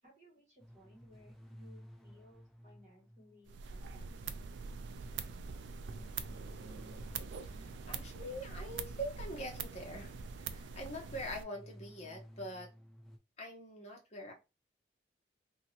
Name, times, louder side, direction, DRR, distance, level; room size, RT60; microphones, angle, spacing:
voice 1, 0.0-4.2, equal, 35° right, -4 dB, 1.4 m, -62 dB
sound 1, 0.6-4.1 5.8-8.9 11.0-13.2, equal, ahead, 0.3 m, -56 dB
sound 2, 3.5-11.4, right 5 dB, 75° right, 0.3 m, -44 dB
voice 2, 7.5-12.7 13.4-14.3, equal, 35° left, 1 dB, 0.8 m, -44 dB
2.8 x 2.7 x 2.7 m, 0.27 s
head